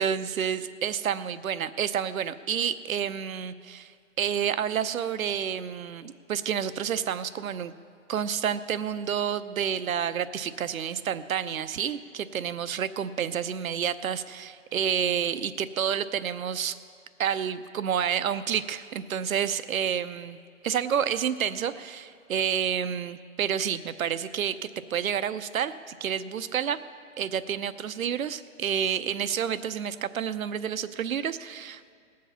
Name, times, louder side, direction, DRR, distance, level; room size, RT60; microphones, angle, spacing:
voice 1, 0.0-7.7 8.1-16.8 17.2-20.4 20.6-26.8 27.2-31.9, right 8 dB, 80° right, 14 dB, 0.7 m, -29 dB
19.5 x 7.6 x 5.7 m, 2.2 s
hypercardioid pair, 170°, 41 cm